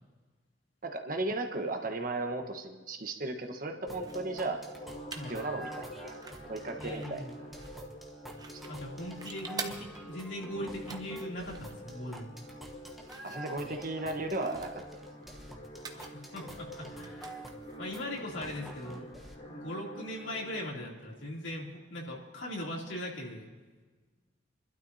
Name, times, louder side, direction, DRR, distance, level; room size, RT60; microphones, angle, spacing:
voice 1, 0.8-4.6 5.3-6.2 6.5-7.5 8.5-8.6 13.2-14.8, right 2 dB, 45° right, 5 dB, 1.2 m, -35 dB
sound 1, 3.6-20.7, equal, 45° left, 2.4 m, -47 dB
sound 2, 3.9-19.3, right 1 dB, ahead, 1.0 m, -49 dB
sound 3, 4.0-19.1, right 4 dB, 20° right, 0.8 m, -49 dB
voice 2, 6.8-7.4 8.7-12.3 15.9-17.5 17.8-19.1 19.5-23.5, left 1 dB, 75° left, -3 dB, 3.0 m, -40 dB
29.5 x 12.0 x 2.8 m, 1.3 s
head